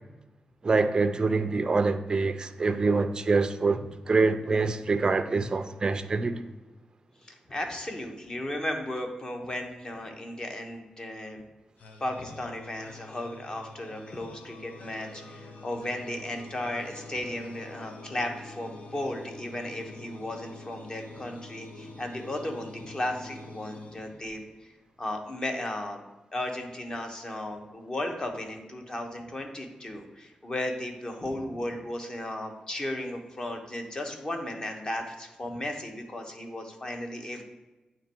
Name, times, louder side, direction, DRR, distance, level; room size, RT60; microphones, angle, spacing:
voice 1, 0.6-3.8 4.1-6.4, right 3 dB, 30° right, 0.3 m, -25 dB
voice 2, 7.2-11.4 12.0-24.7 25.0-26.0 26.3-37.4, left 1 dB, 30° left, 0.9 m, -35 dB
sound 1, 11.8-24.7, left 2 dB, 85° left, 0.7 m, -46 dB
9.0 x 3.0 x 4.5 m
wide cardioid pair, 130°, 3 cm